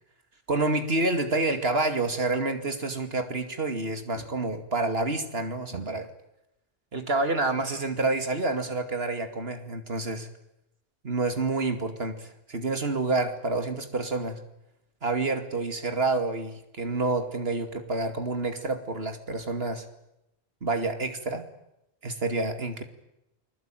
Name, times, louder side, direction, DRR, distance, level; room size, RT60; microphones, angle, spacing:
voice 1, 0.5-6.1 6.9-10.3 11.0-14.4 15.0-19.8 20.6-21.4 22.0-22.8, right 2 dB, 65° right, 7 dB, 2.7 m, -28 dB
29.0 x 20.5 x 9.1 m, 0.86 s
omnidirectional pair, 1.1 m